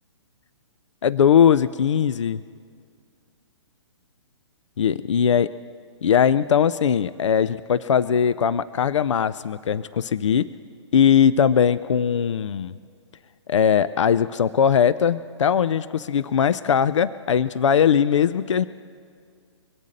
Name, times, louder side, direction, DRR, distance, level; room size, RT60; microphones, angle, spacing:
voice 1, 1.0-2.4 4.8-5.5 6.0-10.5 10.9-12.7 13.5-18.7, left 8 dB, 75° left, 16 dB, 0.4 m, -20 dB
23.0 x 8.3 x 6.5 m, 2.2 s
hypercardioid pair, 130°, 16 cm